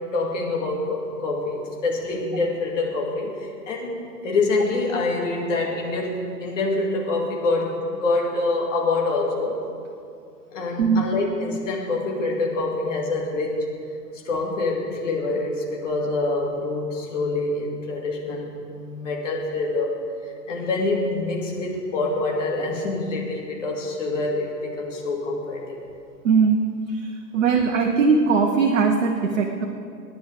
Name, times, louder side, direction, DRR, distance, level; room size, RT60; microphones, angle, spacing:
voice 1, 0.1-9.6 10.5-13.6 14.2-20.0 20.5-25.8, left 2 dB, 45° left, -1 dB, 2.4 m, -26 dB
voice 2, 26.2-29.6, right 5 dB, 50° right, 4 dB, 1.2 m, -20 dB
26.5 x 10.5 x 3.5 m, 2.5 s
figure-of-eight pair, 120°, 50 cm